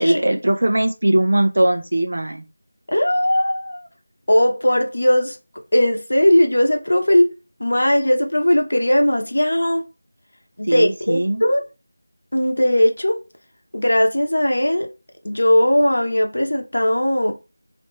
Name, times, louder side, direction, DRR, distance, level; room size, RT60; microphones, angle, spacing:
voice 1, 0.0-2.4 10.7-11.4, right 1 dB, 60° right, 0.8 m, -19 dB
voice 2, 2.9-3.9 4.3-5.4 5.7-7.3 7.6-9.8 10.6-11.6 12.3-13.2 13.7-14.9 15.2-17.3, left 1 dB, 80° left, 1.0 m, -18 dB
3.2 x 3.0 x 3.3 m
figure-of-eight pair, 175°, 0 cm